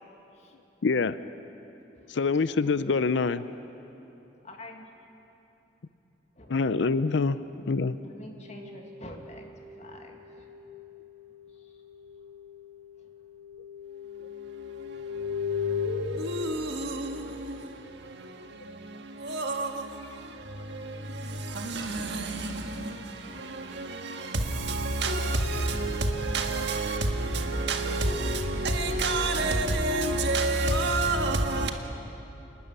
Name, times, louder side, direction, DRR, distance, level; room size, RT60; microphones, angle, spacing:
voice 1, 0.8-1.2 2.1-3.4 6.5-7.4 7.7-8.0, left 4 dB, 70° left, 0.5 m, -25 dB
voice 2, 4.4-4.9 6.4-6.5 7.2-7.3 7.8-9.5 9.8-10.5 11.5-11.7 13.0-13.1, left 1 dB, 40° left, 2.2 m, -46 dB
sound 1, 8.4-11.5 11.9-17.2, left 6 dB, 80° right, 5.2 m, -37 dB
voice 3, 14.2-31.7, right 2 dB, 65° right, 1.7 m, -30 dB
27.0 x 12.0 x 9.7 m
head